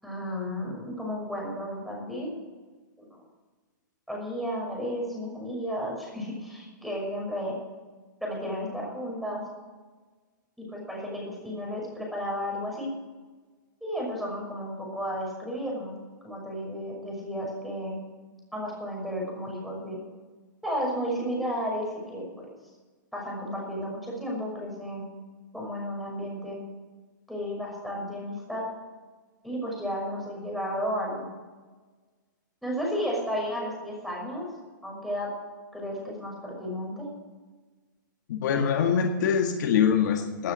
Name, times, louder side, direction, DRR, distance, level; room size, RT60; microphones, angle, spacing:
voice 1, 0.0-2.3 3.0-3.2 4.1-7.6 8.2-9.5 10.6-12.9 13.8-16.0 16.2-18.0 18.5-20.0 20.6-22.5 23.1-25.1 25.5-26.6 27.3-28.7 29.4-31.2 32.6-34.5 34.8-35.3 35.7-37.1, equal, ahead, -3 dB, 6.0 m, -33 dB
voice 2, 38.3-40.5, left 7 dB, 60° left, 4 dB, 1.9 m, -24 dB
17.0 x 9.6 x 6.4 m, 1.3 s
hypercardioid pair, 140°, 11 cm